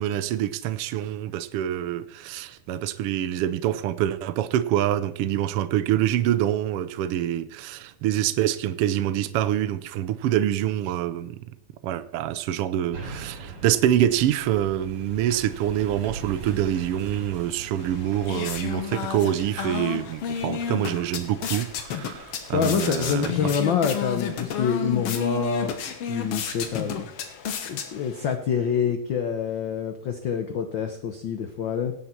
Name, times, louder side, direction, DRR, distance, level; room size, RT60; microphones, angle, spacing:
voice 1, 0.0-11.4 11.8-23.5 26.5-26.6, right 11 dB, 85° right, 1.3 m, -26 dB
sound 1, 12.9-24.4 24.8-24.9, right 4 dB, 60° right, 3.4 m, -42 dB
sound 2, 17.8-28.3, left 8 dB, 60° left, 2.0 m, -32 dB
voice 2, 22.5-25.7 26.1-27.1 27.7-31.9, left 7 dB, 85° left, 1.0 m, -26 dB
17.0 x 8.4 x 4.4 m
omnidirectional pair, 3.3 m